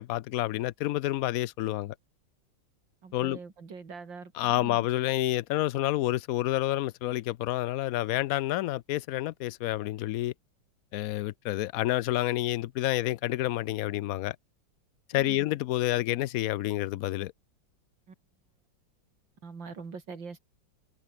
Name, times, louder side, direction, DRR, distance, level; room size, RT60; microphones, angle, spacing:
voice 1, 0.0-1.9 3.1-3.4 4.4-10.3 10.9-14.4 15.1-17.3, left 15 dB, 80° left, 0.7 m, -29 dB
voice 2, 3.0-4.9 15.1-15.5 18.1-18.2 19.4-20.4, right 5 dB, 80° right, 3.8 m, -43 dB
omnidirectional pair, 2.0 m